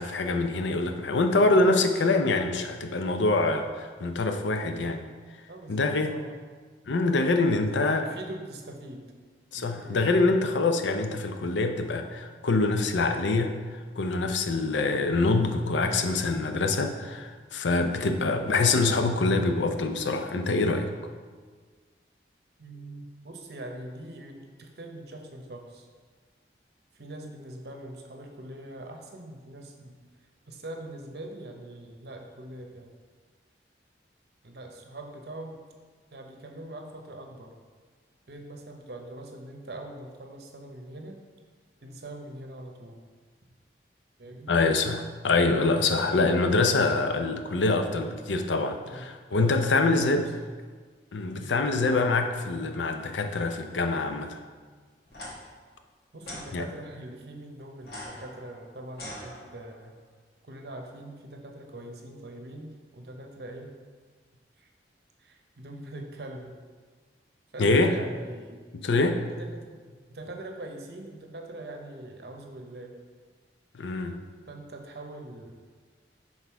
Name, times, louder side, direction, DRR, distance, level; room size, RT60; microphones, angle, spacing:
voice 1, 0.0-5.0 5.7-6.1 6.9-8.1 9.5-13.5 14.0-20.9 44.5-50.3 51.1-54.4 56.5-56.6 67.6-68.0 68.8-69.2 73.7-74.2, left 3 dB, 85° left, 6 dB, 0.5 m, -25 dB
voice 2, 5.5-6.4 7.7-9.0 9.5-10.1 18.2-18.5 22.6-25.9 26.9-30.0 30.5-32.9 34.4-35.6 36.1-37.5 38.3-41.2 41.8-43.0 44.2-44.5 48.8-50.2 51.3-51.6 56.1-59.9 60.4-63.7 64.6-64.7 65.2-66.6 67.5-68.6 69.3-73.0 74.5-75.6, right 1 dB, 60° right, 3 dB, 0.8 m, -42 dB
sound 1, 55.1-55.3 56.2-56.5 57.8-59.8, left 1 dB, 60° left, 1.5 m, -42 dB
6.0 x 3.9 x 4.6 m, 1.5 s
head